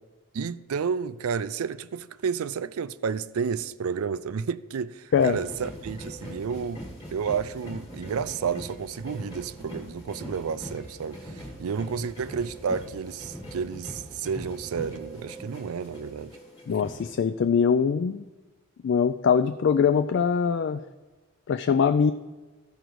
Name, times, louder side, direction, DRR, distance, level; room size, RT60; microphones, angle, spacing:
voice 1, 0.3-6.8 7.1-16.3, right 6 dB, 85° right, 0.4 m, -31 dB
sound 1, 5.1-17.1, equal, 20° left, 1.4 m, -42 dB
voice 2, 16.7-18.2 18.8-20.8 21.5-22.1, left 6 dB, 55° left, 0.3 m, -22 dB
13.5 x 5.1 x 4.6 m
head